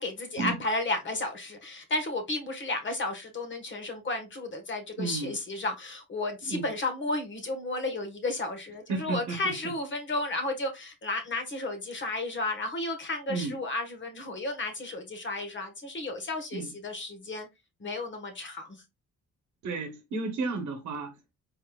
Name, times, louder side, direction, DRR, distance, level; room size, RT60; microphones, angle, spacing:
voice 1, 0.0-17.5 17.8-18.8, left 2 dB, 40° left, 1.3 m, -33 dB
voice 2, 5.0-5.3 6.5-6.7 8.9-9.7 13.3-13.6 16.5-16.7 19.6-21.3, right 3 dB, 70° right, 1.0 m, -33 dB
4.2 x 3.7 x 2.3 m
cardioid pair, 90°, 30 cm